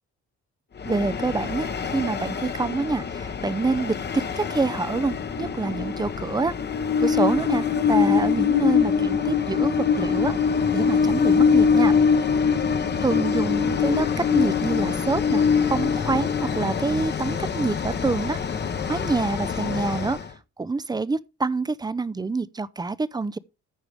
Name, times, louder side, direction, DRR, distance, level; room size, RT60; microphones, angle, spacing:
Train, 0.8-20.3, left 6 dB, 35° left, 0.9 m, -23 dB
voice 1, 0.8-6.5 7.0-12.0 13.0-18.4 18.9-20.2 20.6-23.4, right 3 dB, 15° right, 0.5 m, -26 dB
14.5 x 4.9 x 3.3 m
cardioid pair, 90°, 30 cm